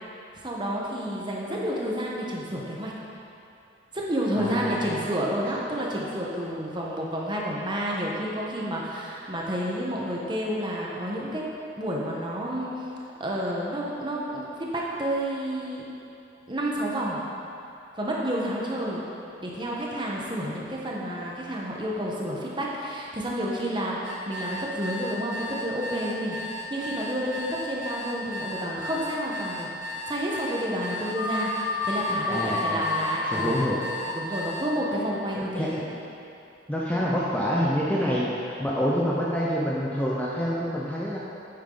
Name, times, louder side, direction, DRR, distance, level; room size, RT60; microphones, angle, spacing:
voice 1, 0.4-2.9 3.9-11.5 11.7-12.9 13.2-15.9 16.5-17.2 18.0-19.0 19.4-24.0 24.3-29.7 30.1-33.7 34.0-35.8, equal, 25° right, -4 dB, 1.2 m, -30 dB
voice 2, 4.4-5.0 32.3-32.9 33.2-33.9 35.4-35.7 36.7-41.2, equal, 10° left, -6 dB, 0.7 m, -27 dB
sound 1, 24.0-34.7, left 1 dB, 75° right, 1.8 m, -35 dB
sound 2, 31.1-35.7, left 2 dB, 65° left, 0.7 m, -31 dB
9.1 x 8.6 x 3.9 m, 2.7 s
head